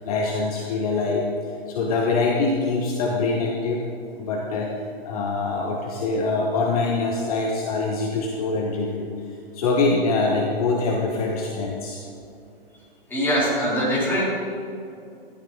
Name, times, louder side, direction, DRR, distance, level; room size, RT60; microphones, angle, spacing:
voice 1, 0.0-3.8 4.1-9.1 9.5-12.0, left 3 dB, 40° left, 0 dB, 1.2 m, -24 dB
voice 2, 13.1-14.2, equal, 5° left, -7 dB, 3.4 m, -22 dB
14.5 x 12.0 x 3.8 m, 2.5 s
hypercardioid pair, 155°, 30 cm